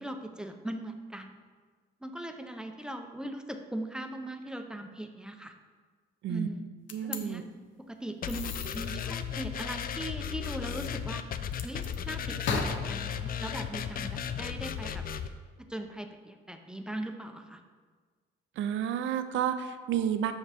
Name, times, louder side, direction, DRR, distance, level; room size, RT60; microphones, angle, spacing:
voice 1, 0.0-1.4 2.0-5.5 6.3-6.6 7.0-7.4 7.8-11.2 11.6-15.0 15.6-17.6, right 1 dB, 5° right, 5 dB, 0.6 m, -39 dB
sound 1, 6.9-7.2 8.3-8.8 11.5-12.0 12.4-14.7, left 5 dB, 70° left, 0.8 m, -37 dB
voice 2, 6.9-7.4 18.6-20.3, right 9 dB, 75° right, 10 dB, 0.5 m, -30 dB
sound 2, 8.2-15.3, left 8 dB, 50° left, 0.4 m, -35 dB
7.1 x 5.7 x 3.4 m, 1.5 s
cardioid pair, 90°, 20 cm